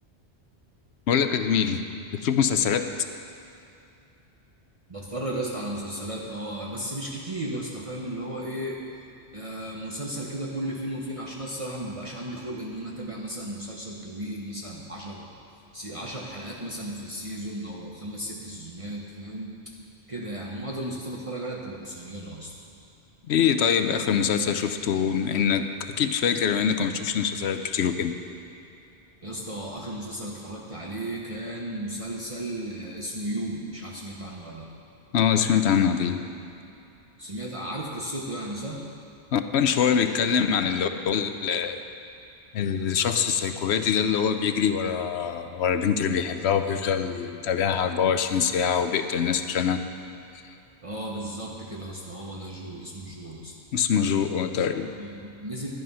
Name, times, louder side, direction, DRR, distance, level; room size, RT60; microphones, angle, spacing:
voice 1, 1.1-1.8 2.1-2.9 23.3-28.1 35.1-36.2 39.3-41.8 42.5-49.8 53.7-54.9, left 7 dB, 80° left, 9 dB, 0.9 m, -24 dB
voice 2, 4.9-8.8 9.3-15.3 15.7-19.6 20.1-22.5 29.2-34.7 37.2-38.8 50.8-53.5 54.9-55.7, right 1 dB, 30° right, -3 dB, 1.2 m, -35 dB
12.0 x 10.0 x 5.5 m, 2.7 s
omnidirectional pair, 1.1 m